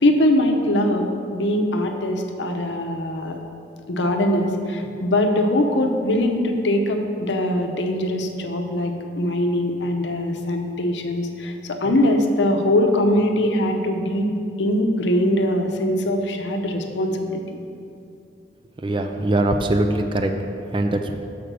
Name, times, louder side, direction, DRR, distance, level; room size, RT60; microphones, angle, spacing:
voice 1, 0.0-3.4 3.9-14.3 14.6-17.4, left 1 dB, 80° left, 4 dB, 0.7 m, -22 dB
voice 2, 18.8-20.3 20.7-21.2, right 1 dB, 25° right, 5 dB, 0.4 m, -21 dB
6.1 x 5.1 x 6.7 m, 2.6 s
head